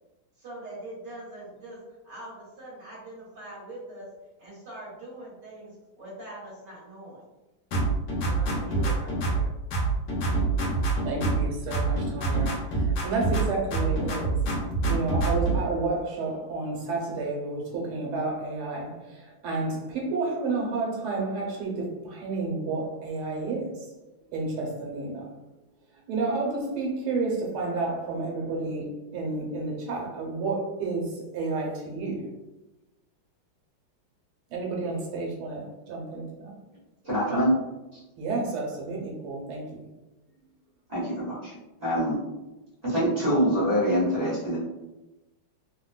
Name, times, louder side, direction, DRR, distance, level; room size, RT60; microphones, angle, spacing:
voice 1, 0.3-4.1 4.4-7.2 8.2-9.5, right 1 dB, 55° right, -10 dB, 1.7 m, -42 dB
sound 1, 7.7-9.5 9.7-11.5 11.7-13.5 13.7-15.6, right 3 dB, 70° left, 1.2 m, -26 dB
voice 2, 11.0-14.4 14.9-23.9 24.3-25.3 26.1-32.3 34.5-36.5 38.2-39.9, right 3 dB, 85° right, -1 dB, 1.7 m, -31 dB
voice 3, 37.0-37.6 37.9-38.0 40.9-41.5 41.8-42.2 42.8-44.6, equal, 35° right, -10 dB, 0.6 m, -25 dB
3.8 x 2.1 x 2.3 m, 1.0 s
omnidirectional pair, 2.3 m